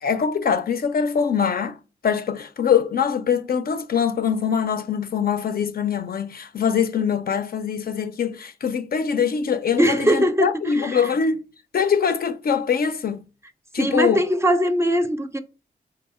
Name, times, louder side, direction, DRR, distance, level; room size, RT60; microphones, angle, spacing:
voice 1, 0.0-1.8 2.0-11.4 11.7-13.2 13.7-14.2, left 7 dB, 60° left, 0.4 m, -23 dB
voice 2, 9.8-11.0 13.8-15.4, equal, 15° right, 0.4 m, -21 dB
3.6 x 2.0 x 4.1 m
wide cardioid pair, 85°, 18 cm